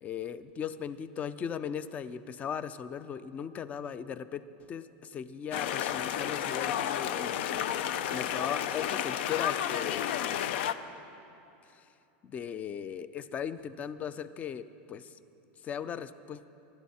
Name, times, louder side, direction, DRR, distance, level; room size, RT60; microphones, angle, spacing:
voice 1, 0.0-4.4 4.7-10.3 11.7-11.9 12.2-15.2 15.6-16.4, left 8 dB, 25° left, 14 dB, 0.5 m, -38 dB
sound 1, 5.5-10.7, left 10 dB, 65° left, 0.6 m, -31 dB
24.5 x 12.0 x 4.2 m, 2.8 s
supercardioid pair, 155°, 6 cm